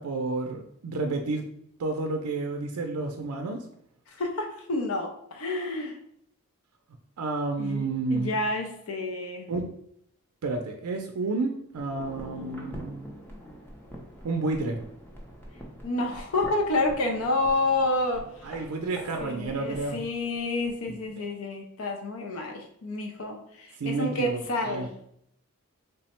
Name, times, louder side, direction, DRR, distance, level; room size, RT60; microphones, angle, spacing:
voice 1, 0.0-1.4 1.8-3.6 7.2-8.3 9.5-9.7 10.4-13.1 14.2-14.8 18.4-20.0 20.9-21.0 23.8-24.9, right 3 dB, 85° right, 4 dB, 0.4 m, -30 dB
voice 2, 4.1-6.0 7.6-9.5 15.8-18.5 19.2-24.9, left 2 dB, 75° left, 3 dB, 0.5 m, -29 dB
sound 1, 11.7-20.8 21.1-21.2, equal, 10° left, 0.5 m, -45 dB
3.3 x 2.0 x 4.2 m, 0.70 s
head